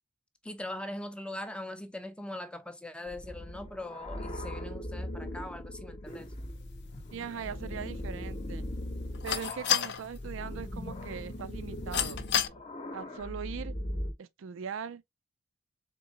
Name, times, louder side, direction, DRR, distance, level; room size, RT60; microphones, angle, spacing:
voice 1, 0.4-6.3, left 1 dB, 5° left, 0.5 m, -41 dB
sound 1, 3.1-14.1, left 1 dB, 30° left, 0.8 m, -39 dB
sound 2, 6.1-12.5, left 10 dB, 55° left, 0.5 m, -36 dB
voice 2, 7.1-8.7 9.2-12.2 12.9-13.7 14.2-15.0, right 7 dB, 70° right, 0.4 m, -40 dB
3.7 x 3.6 x 2.8 m
head